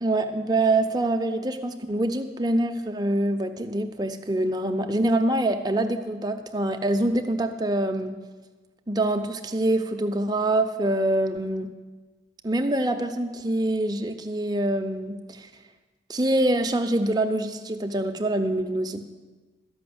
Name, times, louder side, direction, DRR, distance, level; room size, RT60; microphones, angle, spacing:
voice 1, 0.0-8.2 8.9-11.7 12.4-15.5 16.1-19.0, right 1 dB, 20° right, 5 dB, 0.6 m, -25 dB
12.5 x 5.8 x 7.8 m, 1.3 s
head